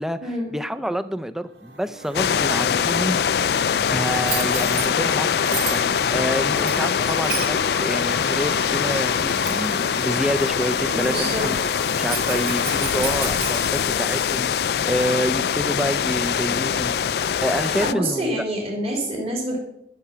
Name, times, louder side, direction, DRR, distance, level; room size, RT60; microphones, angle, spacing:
voice 1, 0.0-3.2 3.9-11.6 12.0-17.1 17.4-18.3, equal, 5° right, 12 dB, 0.5 m, -28 dB
sound 1, 1.5-13.8, right 3 dB, 80° right, 1.6 m, -37 dB
sound 2, 2.1-17.9, left 7 dB, 60° left, 0.4 m, -23 dB
Bell, 4.2-4.9 5.5-6.0 6.5-7.6 8.5-8.6 9.2-9.7 12.1-13.6, right 7 dB, 55° right, 2.0 m, -32 dB
voice 2, 10.9-11.5 17.8-19.6, right 1 dB, 35° right, -1 dB, 3.3 m, -26 dB
13.5 x 7.0 x 5.7 m, 0.76 s
head